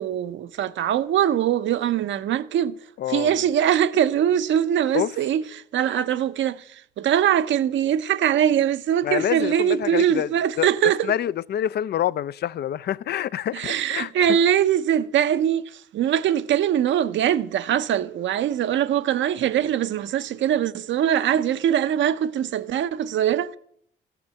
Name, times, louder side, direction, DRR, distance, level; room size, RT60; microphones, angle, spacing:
voice 1, 0.0-2.8 3.1-11.1 13.5-23.6, right 10 dB, 70° right, 0.7 m, -22 dB
voice 2, 3.0-3.4 4.9-5.1 9.0-10.3 10.6-14.1, left 11 dB, 55° left, 0.4 m, -27 dB
14.5 x 6.8 x 7.5 m
cardioid pair, 90°, 20 cm